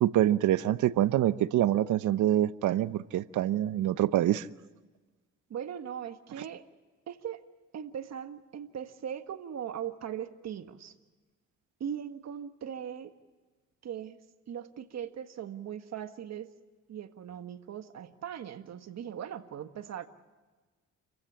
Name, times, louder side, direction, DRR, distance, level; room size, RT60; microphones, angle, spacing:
voice 1, 0.0-4.5, right 12 dB, 75° right, 0.8 m, -25 dB
voice 2, 5.5-6.6 7.1-7.4 7.7-10.9 11.8-13.1 13.8-14.2 14.5-16.5 16.9-20.1, right 9 dB, 60° right, 1.7 m, -39 dB
28.5 x 15.5 x 8.7 m
cardioid pair, 90°, 30 cm